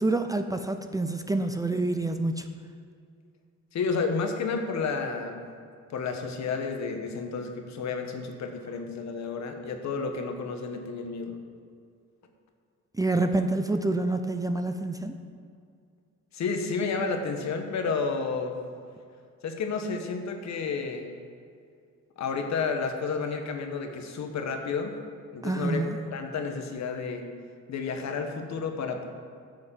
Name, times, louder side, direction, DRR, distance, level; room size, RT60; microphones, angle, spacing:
voice 1, 0.0-2.5 13.0-15.2 25.4-26.0, right 2 dB, 10° right, 7 dB, 0.5 m, -27 dB
voice 2, 3.7-5.4 5.9-11.4 16.3-18.5 19.4-21.1 22.2-24.9 25.3-25.8 26.1-27.2 27.7-29.1, left 4 dB, 65° left, 5 dB, 1.4 m, -31 dB
9.1 x 6.4 x 7.4 m, 2.3 s
cardioid pair, 90°, 30 cm